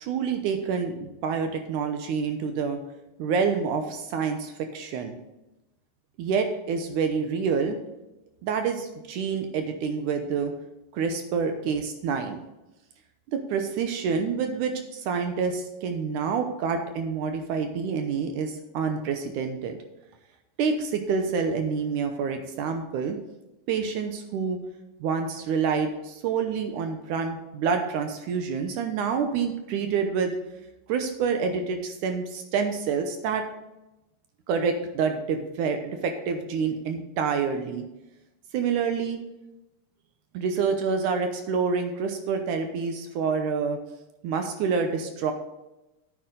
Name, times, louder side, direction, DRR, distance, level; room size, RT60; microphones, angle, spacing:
voice 1, 0.0-2.8 3.2-5.2 6.2-7.8 8.4-10.5 10.9-12.4 13.3-19.8 20.6-23.2 23.7-24.6 25.0-30.3 30.9-33.4 34.5-37.9 38.5-39.2 40.3-43.8 44.2-45.3, right 5 dB, 75° right, 6 dB, 2.1 m, -27 dB
9.5 x 9.1 x 3.8 m, 0.96 s
omnidirectional pair, 4.0 m